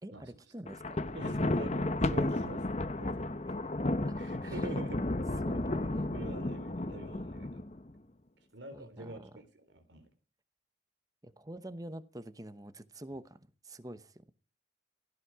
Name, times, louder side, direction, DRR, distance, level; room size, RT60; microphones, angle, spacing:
voice 1, 0.0-1.5 3.5-3.7 4.0-4.6 5.5-6.1 8.7-9.3 11.2-14.3, right 1 dB, 20° right, 0.9 m, -47 dB
Thunder, 0.7-7.9, left 2 dB, 35° left, 0.9 m, -33 dB
voice 2, 1.1-2.6 2.9-3.3 4.2-5.0 5.8-7.6 8.5-10.1, right 2 dB, 70° right, 3.7 m, -46 dB
17.0 x 14.5 x 4.8 m
head